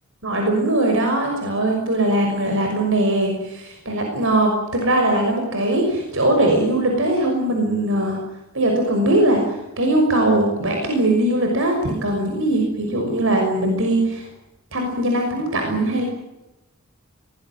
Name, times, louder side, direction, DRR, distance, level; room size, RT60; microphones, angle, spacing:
voice 1, 0.2-8.2 8.5-14.3 14.7-16.0, right 1 dB, 65° right, 2 dB, 6.0 m, -20 dB
24.0 x 19.5 x 9.7 m, 0.95 s
head